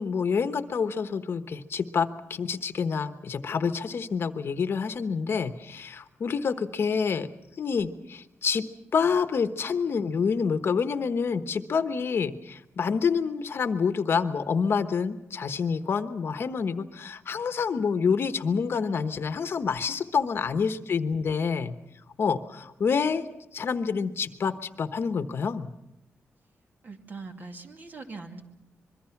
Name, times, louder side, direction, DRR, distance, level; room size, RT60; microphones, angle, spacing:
voice 1, 0.0-7.3 7.6-8.6 8.9-21.7 22.2-23.2 23.5-25.7, left 5 dB, 55° left, 10 dB, 1.1 m, -27 dB
voice 2, 20.7-21.0 26.8-28.4, right 3 dB, 40° right, 4 dB, 2.4 m, -42 dB
25.5 x 22.5 x 5.9 m, 0.88 s
wide cardioid pair, 150°, 5 cm